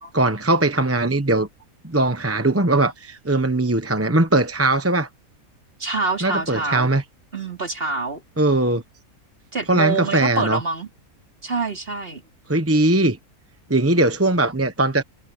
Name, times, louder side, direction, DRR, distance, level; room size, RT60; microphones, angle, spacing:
voice 1, 0.1-1.5 1.8-5.1 6.2-7.0 8.4-8.8 9.7-10.6 12.5-13.2 13.7-15.0, right 2 dB, 10° right, 0.8 m, -20 dB
voice 2, 5.8-6.9 7.3-8.2 9.5-10.9 11.4-12.2, right 4 dB, 40° right, 3.7 m, -26 dB
omnidirectional pair, 1.5 m